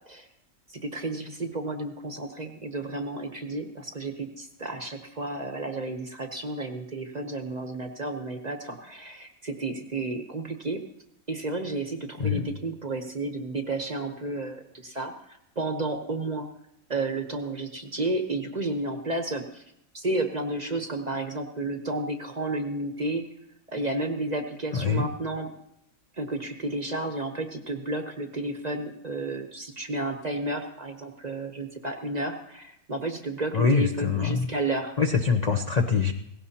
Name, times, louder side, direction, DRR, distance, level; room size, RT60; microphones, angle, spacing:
voice 1, 0.8-10.8 11.3-16.5 16.9-19.6 19.9-23.2 23.7-25.5 26.2-34.9, right 2 dB, 35° right, 6 dB, 0.8 m, -32 dB
voice 2, 24.7-25.1 33.5-34.5 35.0-36.1, left 5 dB, 50° left, 5 dB, 0.5 m, -24 dB
17.5 x 16.0 x 2.8 m, 0.77 s
omnidirectional pair, 1.6 m